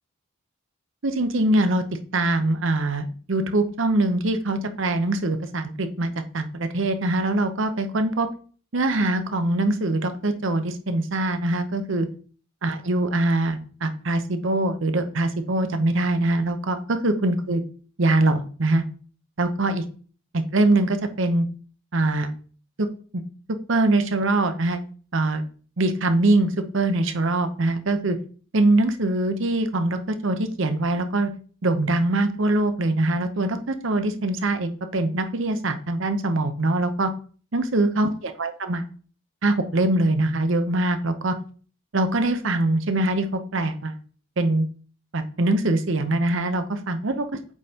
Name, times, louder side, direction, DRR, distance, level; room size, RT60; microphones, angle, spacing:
voice 1, 1.0-1.8 2.1-8.3 8.7-12.1 12.6-17.6 18.0-18.8 19.4-19.8 20.3-21.5 21.9-22.3 22.8-22.9 23.1-23.2 23.7-24.8 25.1-25.4 25.8-28.2 28.5-31.3 31.6-37.1 37.5-38.9 39.4-41.3 41.9-44.0 44.4-44.7 45.1-47.2, right 2 dB, 65° right, 8 dB, 0.8 m, -23 dB
8.1 x 5.3 x 2.9 m, 0.41 s
head